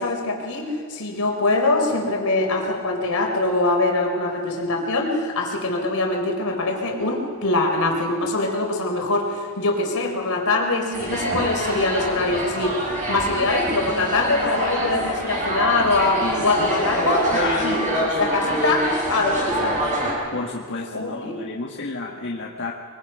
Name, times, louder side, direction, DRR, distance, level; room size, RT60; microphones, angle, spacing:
voice 1, 0.0-12.8 13.1-17.3 17.6-19.8 20.9-21.4, left 2 dB, 75° left, 2 dB, 3.7 m, -23 dB
sound 1, 10.9-20.1, right 1 dB, 35° right, 6.8 m, -25 dB
voice 2, 16.2-16.5 17.3-18.5 20.3-22.7, left 3 dB, 55° left, -2 dB, 1.5 m, -31 dB
23.0 x 23.0 x 5.5 m, 2.1 s
head